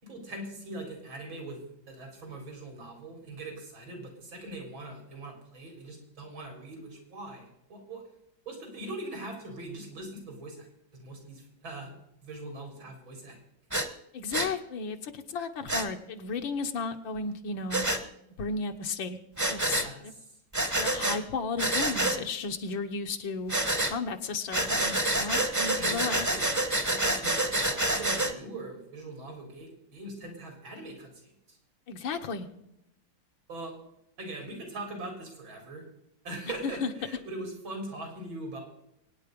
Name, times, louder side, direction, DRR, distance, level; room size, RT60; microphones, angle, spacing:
voice 1, 0.0-8.0 8.5-10.7 10.9-11.9 12.2-13.4 19.6-20.4 25.8-31.6 33.5-33.8 34.2-35.8 36.2-38.6, right 2 dB, 85° right, 3 dB, 4.7 m, -41 dB
Breathing, 13.7-13.9 14.3-14.5 15.7-15.9 17.7-18.0 19.4-19.9 20.5-21.2 21.6-22.2 23.5-23.9 24.5-28.3, right 1 dB, 15° right, 0.8 m, -27 dB
voice 2, 14.1-17.9 18.4-19.2 19.5-20.1 20.8-23.6 23.8-26.3 31.9-32.5 36.6-36.9, left 4 dB, 80° left, 7 dB, 1.9 m, -34 dB
23.0 x 9.6 x 5.3 m, 0.78 s
omnidirectional pair, 2.1 m